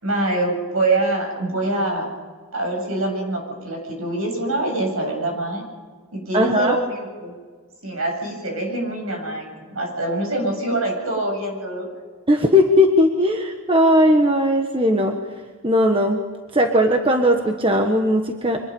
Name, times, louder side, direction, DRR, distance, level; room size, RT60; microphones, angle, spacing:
voice 1, 0.0-2.1 2.5-5.6 6.1-7.3 7.8-11.9, right 2 dB, 70° right, 2 dB, 7.9 m, -24 dB
voice 2, 6.3-6.8 12.3-15.2 15.6-16.2 16.5-18.6, equal, 25° right, 3 dB, 1.4 m, -18 dB
25.0 x 21.0 x 5.5 m, 1.5 s
head